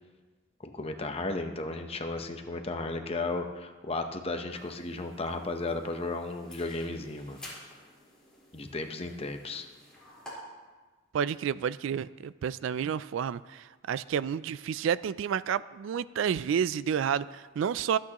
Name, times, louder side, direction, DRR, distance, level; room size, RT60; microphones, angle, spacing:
voice 1, 0.6-7.4 8.5-9.7, left 2 dB, 30° left, 5 dB, 0.8 m, -34 dB
sound 1, 4.5-10.3, left 1 dB, 5° left, 4.2 m, -52 dB
voice 2, 11.1-18.0, right 8 dB, 65° right, 17 dB, 0.3 m, -30 dB
24.5 x 8.6 x 3.0 m, 1.3 s
head